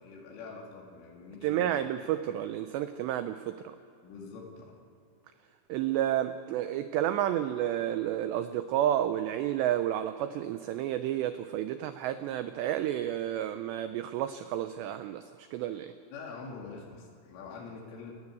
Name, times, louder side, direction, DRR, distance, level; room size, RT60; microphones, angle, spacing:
voice 1, 0.0-1.9 4.0-4.8 16.0-18.1, left 4 dB, 75° left, -2 dB, 5.0 m, -45 dB
voice 2, 1.4-3.6 5.7-15.3 15.5-15.9, right 11 dB, 90° right, 10 dB, 2.4 m, -30 dB
29.0 x 14.5 x 8.4 m, 2.6 s
omnidirectional pair, 5.8 m